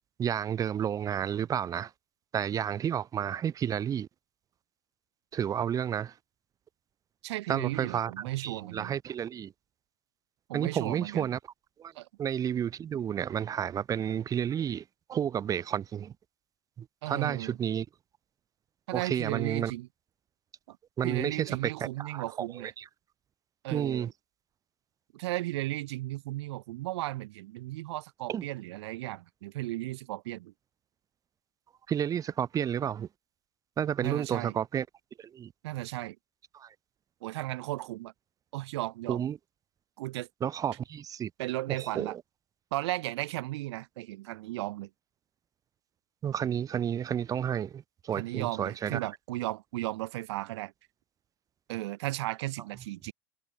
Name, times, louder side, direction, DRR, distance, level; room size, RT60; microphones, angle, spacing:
voice 1, 0.2-1.9 2.3-4.1 5.3-6.1 7.5-8.1 8.4-9.5 10.5-11.4 11.8-11.9 12.2-16.1 16.8-17.9 18.9-19.7 21.0-22.8 23.7-24.1 28.3-28.5 31.9-33.1 33.8-34.9 35.2-35.5 36.5-36.7 39.1-39.4 40.4-41.3 41.7-42.2 46.2-49.1, right 9 dB, 25° right, 0.5 m, -31 dB
voice 2, 7.2-9.0 10.5-11.3 11.9-12.1 17.0-17.6 18.9-19.9 20.7-20.8 21.0-22.7 23.6-24.1 25.1-30.5 34.0-34.5 35.6-36.2 37.2-38.1 38.5-39.2 40.0-40.3 41.4-42.1 42.7-44.9 48.1-50.7 51.7-53.1, right 18 dB, 75° right, 1.4 m, -35 dB
supercardioid pair, 115°, 14 cm